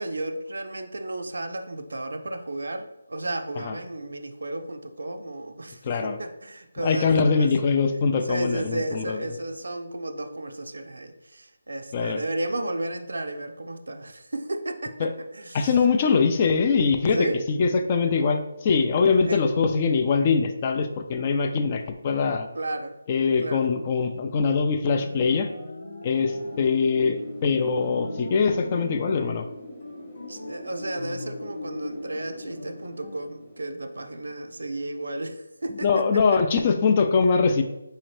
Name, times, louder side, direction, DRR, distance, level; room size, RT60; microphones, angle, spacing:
voice 1, 0.0-7.1 7.4-7.5 8.3-15.1 15.3-15.7 17.1-17.4 19.3-19.4 22.5-23.0 23.4-23.7 30.3-35.9 36.3-36.4, right 1 dB, 80° right, 7 dB, 0.5 m, -33 dB
voice 2, 5.8-6.2 6.8-9.2 11.9-12.2 15.0-15.1 15.5-22.5 23.1-25.5 26.0-29.5 35.8-37.6, left 5 dB, 30° left, 6 dB, 0.4 m, -22 dB
sound 1, 24.9-26.7 27.8-29.5 29.8-31.8 32.5-33.2, left 2 dB, 65° left, 0.7 m, -41 dB
Wind, 26.1-34.8, left 1 dB, 5° left, 0.8 m, -40 dB
4.2 x 2.7 x 3.1 m, 0.90 s
figure-of-eight pair, 160°, 0 cm